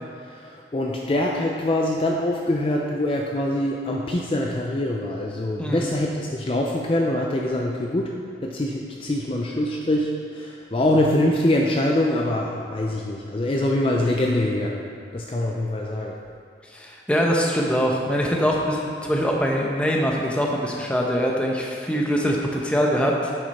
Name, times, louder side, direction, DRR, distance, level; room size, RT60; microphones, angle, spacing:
voice 1, 0.2-8.1 8.4-14.8 15.1-16.2, left 1 dB, 30° left, -1 dB, 0.5 m, -24 dB
voice 2, 16.7-23.3, equal, 5° left, -1 dB, 0.8 m, -23 dB
8.4 x 6.7 x 4.2 m, 2.2 s
head